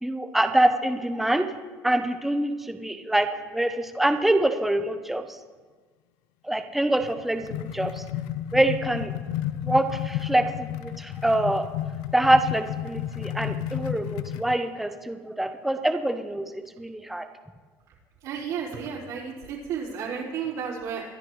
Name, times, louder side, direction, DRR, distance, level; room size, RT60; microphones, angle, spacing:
voice 1, 0.0-1.4 1.8-5.2 6.4-8.0 8.5-9.1 9.6-11.7 12.1-17.3, right 1 dB, 5° right, 7 dB, 0.7 m, -25 dB
sound 1, 7.0-14.5, left 12 dB, 85° left, 0.4 m, -32 dB
voice 2, 18.2-21.0, right 7 dB, 70° right, -8 dB, 4.4 m, -32 dB
24.5 x 11.0 x 3.2 m, 1.4 s
cardioid pair, 135°, 6 cm